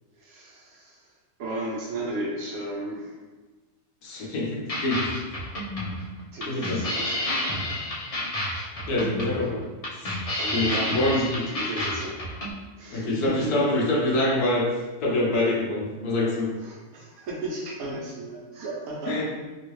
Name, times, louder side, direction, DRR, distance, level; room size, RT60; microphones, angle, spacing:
voice 1, 0.2-1.1 1.4-3.2 6.3-7.7 10.4-12.2 12.8-13.7 16.6-19.2, right 1 dB, 70° right, -3 dB, 1.2 m, -35 dB
voice 2, 4.0-5.2 6.5-6.8 8.9-9.6 9.9-10.2 10.5-11.4 12.9-16.5 19.1-19.2, left 1 dB, 80° left, -2 dB, 1.3 m, -25 dB
sound 1, 4.7-12.5, left 1 dB, 65° left, 0.3 m, -30 dB
3.4 x 2.3 x 3.1 m, 1.2 s
omnidirectional pair, 1.6 m